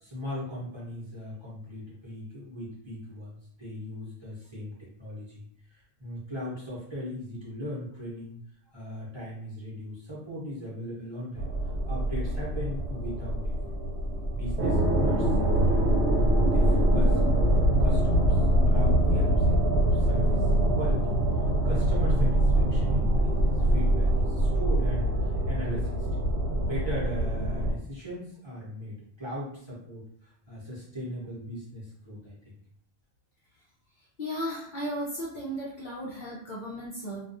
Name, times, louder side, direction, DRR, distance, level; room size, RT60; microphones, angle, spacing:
voice 1, 0.0-4.7 5.0-5.4 5.7-8.4 8.7-11.4 11.9-13.5 14.3-15.9 16.4-21.1 21.6-26.1 26.5-30.0 30.5-32.5, equal, 30° right, -8 dB, 0.8 m, -38 dB
sound 1, 11.4-27.7, right 1 dB, 75° right, 0.9 m, -24 dB
voice 2, 34.2-37.2, equal, 50° left, -6 dB, 0.7 m, -35 dB
2.3 x 2.3 x 2.6 m, 0.67 s
omnidirectional pair, 1.1 m